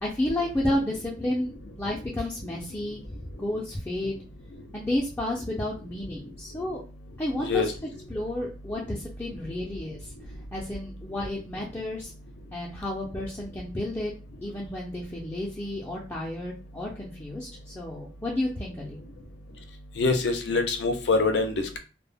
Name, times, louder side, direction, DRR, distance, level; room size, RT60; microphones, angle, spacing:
voice 1, 0.0-4.2 4.7-6.8 7.2-7.7 8.1-10.1 10.5-12.1 12.5-14.1 14.4-19.0, left 1 dB, 10° left, -4 dB, 0.4 m, -31 dB
voice 2, 20.0-21.8, left 3 dB, 70° left, 7 dB, 0.5 m, -24 dB
2.1 x 2.0 x 3.4 m, 0.34 s
head